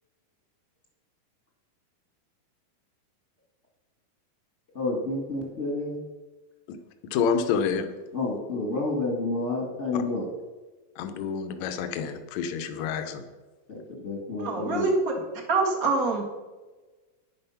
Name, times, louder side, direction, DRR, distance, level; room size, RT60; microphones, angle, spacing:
voice 1, 4.7-6.0 8.1-10.3 13.7-14.9, left 2 dB, 30° left, 1.3 m, -30 dB
voice 2, 7.1-7.9 9.9-10.0 11.0-13.2, left 6 dB, 70° left, 1.8 m, -28 dB
voice 3, 14.4-15.1 15.5-16.2, right 3 dB, 40° right, 1.3 m, -25 dB
10.5 x 10.0 x 5.7 m
omnidirectional pair, 4.4 m